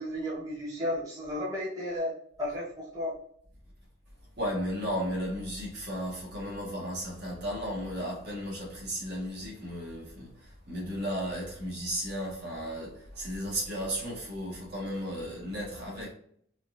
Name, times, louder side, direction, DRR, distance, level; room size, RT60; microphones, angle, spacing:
voice 1, 0.0-2.1 2.4-3.1, left 1 dB, 15° right, 1.1 m, -33 dB
voice 2, 4.4-16.1, equal, 50° right, 1.3 m, -34 dB
3.9 x 2.4 x 2.5 m
head